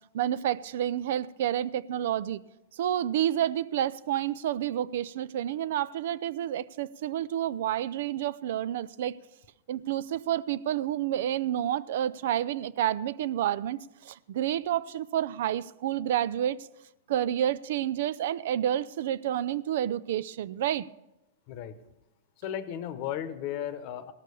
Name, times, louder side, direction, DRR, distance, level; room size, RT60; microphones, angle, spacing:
voice 1, 0.1-2.4 2.7-9.2 9.7-16.7 17.1-20.9, right 11 dB, 65° right, 0.4 m, -29 dB
voice 2, 22.4-24.1, left 10 dB, 45° left, 0.9 m, -35 dB
17.0 x 6.5 x 6.8 m
hypercardioid pair, 135°, 0 cm